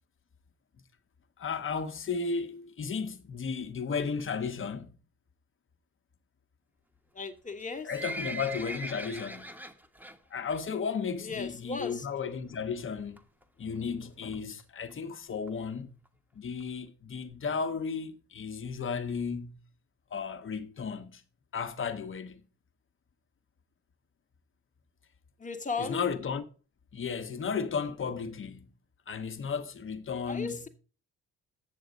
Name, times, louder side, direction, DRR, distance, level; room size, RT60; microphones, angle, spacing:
voice 1, 1.4-4.9 7.8-9.5 10.3-13.2 13.6-15.9 16.3-19.6 20.1-21.2 21.5-22.4 25.8-26.4 26.9-28.7 29.1-30.7, left 5 dB, 40° left, 1.2 m, -34 dB
voice 2, 7.1-7.9 11.2-12.1 25.4-26.0 30.3-30.7, left 4 dB, 25° left, 1.5 m, -36 dB
Livestock farm animals working animals, 7.5-10.2 10.5-10.8 11.1-11.2 11.9-12.0 12.2-12.3 12.5-12.6 13.2-13.4 14.0-14.1 14.3-14.4 14.6-14.7 14.9-15.0 15.5-15.6 16.0-16.1 16.6-16.7, right 2 dB, 5° right, 1.3 m, -40 dB
8.8 x 6.7 x 5.2 m
cardioid pair, 90°, 30 cm